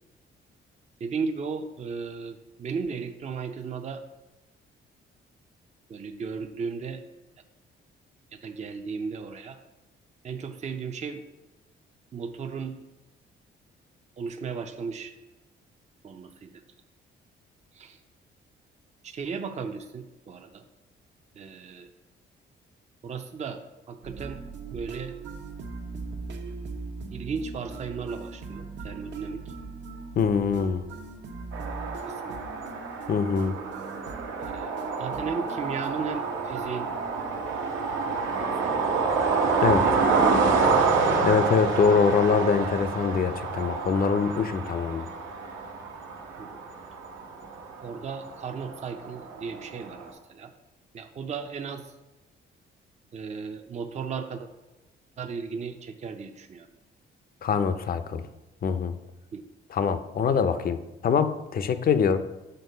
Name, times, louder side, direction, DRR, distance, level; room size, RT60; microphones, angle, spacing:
voice 1, 1.0-4.0 5.9-7.0 8.3-9.6 10.2-11.2 12.1-12.7 14.2-15.1 16.0-16.6 17.7-18.0 19.0-20.6 21.4-21.9 23.0-23.6 23.9-24.4 24.7-25.1 27.1-29.5 32.0-32.4 34.4-34.7 35.0-36.9 38.4-38.7 46.4-46.6 47.8-50.5 50.9-51.9 53.1-54.5 55.2-56.7 59.3-59.4, right 5 dB, 35° right, 6 dB, 0.5 m, -35 dB
sound 1, 24.0-41.3, right 4 dB, 65° right, 0.8 m, -41 dB
voice 2, 30.2-30.8 33.1-33.6 39.6-40.0 41.2-45.1 57.4-58.2 58.6-58.9 59.7-62.2, left 6 dB, 50° left, 11 dB, 0.6 m, -24 dB
sound 2, 31.5-50.1, right 4 dB, 80° right, 1.1 m, -28 dB
6.7 x 3.7 x 5.4 m, 1.0 s
cardioid pair, 90°, 20 cm